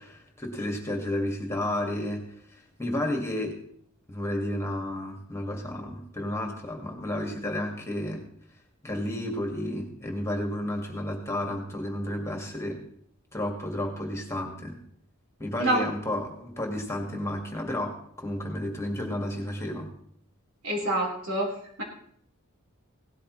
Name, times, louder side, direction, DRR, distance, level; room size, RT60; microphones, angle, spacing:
voice 1, 0.0-2.2 2.5-3.6 4.1-8.2 8.8-12.8 13.3-14.8 15.4-19.9, left 1 dB, 15° left, 1 dB, 2.0 m, -32 dB
voice 2, 20.6-21.8, right 1 dB, 80° right, -2 dB, 4.4 m, -27 dB
17.5 x 12.5 x 3.2 m, 0.66 s
head